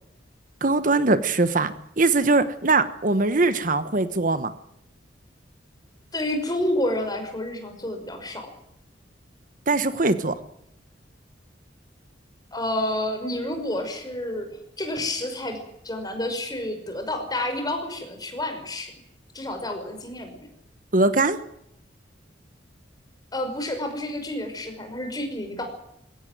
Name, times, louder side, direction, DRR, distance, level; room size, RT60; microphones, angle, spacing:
voice 1, 0.6-4.5 9.7-10.4 20.9-21.4, right 3 dB, 45° right, 12 dB, 1.2 m, -21 dB
voice 2, 6.1-8.5 12.5-14.5 14.8-15.6 15.8-18.9 19.3-20.5 23.3-25.7, left 1 dB, 20° left, 5 dB, 5.6 m, -29 dB
22.0 x 17.0 x 9.3 m, 0.79 s
head